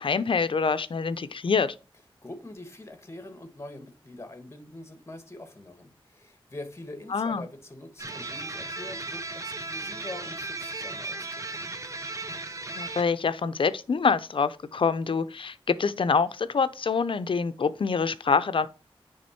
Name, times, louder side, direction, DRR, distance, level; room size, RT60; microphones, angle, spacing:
voice 1, 0.0-1.7 7.1-7.4 12.8-18.7, left 5 dB, 65° left, 0.6 m, -26 dB
voice 2, 2.2-11.7, left 2 dB, 30° left, 1.4 m, -44 dB
sound 1, 8.0-13.0, right 2 dB, 35° right, 0.8 m, -36 dB
9.6 x 3.6 x 4.3 m
wide cardioid pair, 90°, 9 cm